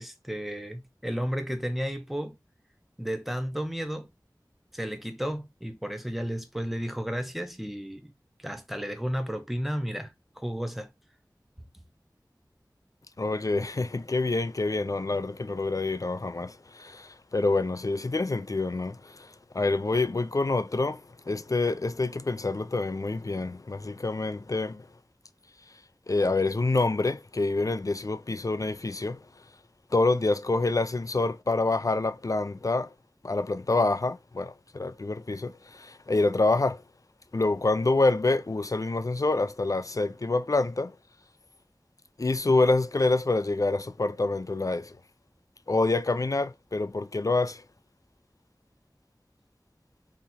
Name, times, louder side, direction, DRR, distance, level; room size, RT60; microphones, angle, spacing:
voice 1, 0.0-2.4 3.0-4.1 4.7-8.1 8.4-10.9, equal, ahead, 0.8 m, -33 dB
voice 2, 13.2-21.0 21.3-24.9 26.1-29.2 29.9-32.9 33.2-36.8 37.3-40.9 42.2-44.9 45.7-47.6, left 3 dB, 50° left, 0.4 m, -27 dB
3.4 x 2.9 x 4.1 m
wide cardioid pair, 45°, 7 cm